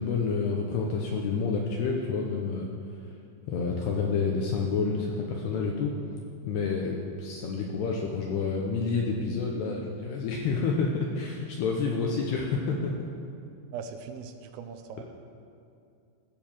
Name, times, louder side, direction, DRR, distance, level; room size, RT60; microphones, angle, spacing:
voice 1, 0.0-2.7 3.5-5.9 6.5-13.1 15.0-15.1, left 4 dB, 75° left, 0 dB, 2.5 m, -29 dB
voice 2, 13.7-15.0, right 6 dB, 85° right, 7 dB, 3.2 m, -40 dB
16.0 x 7.0 x 7.3 m, 2.5 s
omnidirectional pair, 5.8 m